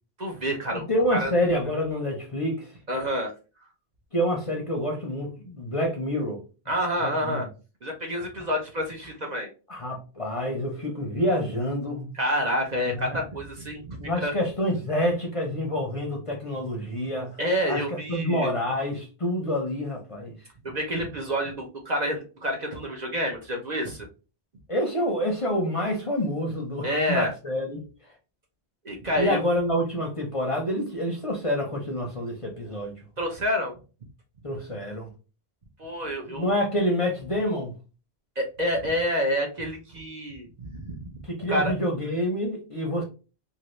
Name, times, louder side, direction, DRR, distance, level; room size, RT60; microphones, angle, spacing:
voice 1, 0.2-1.3 2.9-3.3 6.7-7.5 7.8-9.5 12.1-14.3 17.4-18.6 20.6-24.1 26.8-27.3 28.8-29.4 33.2-33.8 35.8-36.5 38.4-41.2 41.5-41.7, equal, 45° right, 0.7 m, -28 dB
voice 2, 0.7-2.8 4.1-6.4 7.0-7.4 9.7-12.2 12.8-13.3 14.0-17.4 17.7-20.4 24.7-27.9 28.9-33.0 34.4-35.1 36.3-37.7 41.2-43.0, equal, 35° left, 0.6 m, -27 dB
2.7 x 2.6 x 3.0 m
omnidirectional pair, 1.1 m